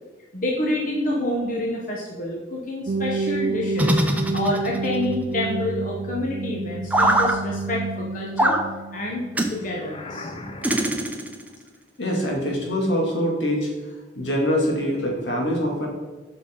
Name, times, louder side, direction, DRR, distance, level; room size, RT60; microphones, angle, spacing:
voice 1, 0.3-4.0 4.3-8.6 8.9-9.3 9.5-10.3, left 1 dB, 45° left, -2 dB, 1.0 m, -28 dB
sound 1, 2.9-10.7, right 3 dB, 45° right, 0.3 m, -30 dB
sound 2, 3.8-5.0 6.9-7.3 8.4-8.6 9.3-9.6 10.6-11.5, right 1 dB, 10° right, 0.6 m, -22 dB
sound 3, 9.6-11.2, left 2 dB, 30° left, 0.6 m, -39 dB
voice 2, 12.0-13.7 14.2-15.9, equal, 80° left, -2 dB, 2.4 m, -24 dB
8.3 x 5.9 x 3.9 m, 1.3 s
head